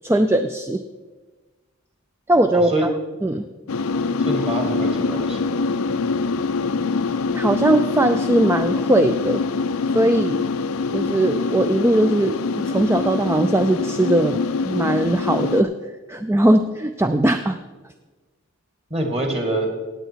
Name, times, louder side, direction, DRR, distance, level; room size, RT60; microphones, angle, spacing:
voice 1, 0.0-0.8 2.3-2.7 3.2-3.5 7.3-9.4 9.9-10.5 10.9-14.4 14.7-15.7 16.1-17.6, right 1 dB, 10° right, 8 dB, 0.4 m, -19 dB
voice 2, 2.5-2.9 4.2-5.6 18.9-19.7, right 1 dB, 30° right, 3 dB, 2.0 m, -25 dB
sound 1, 3.7-15.6, left 4 dB, 80° left, 0.5 m, -24 dB
17.0 x 8.2 x 4.5 m, 1.3 s
head